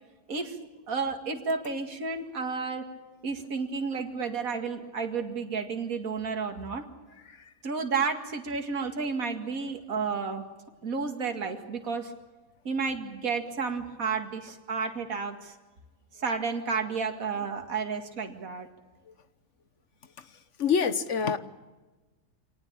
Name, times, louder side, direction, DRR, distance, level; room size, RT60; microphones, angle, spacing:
voice 1, 0.9-2.8 3.2-6.8 7.6-10.4 10.8-12.1 12.6-15.5 16.2-18.7, right 5 dB, 55° right, 4 dB, 2.6 m, -31 dB
voice 2, 20.6-21.4, left 6 dB, 50° left, 13 dB, 1.2 m, -25 dB
26.0 x 19.0 x 8.8 m, 1.2 s
omnidirectional pair, 1.8 m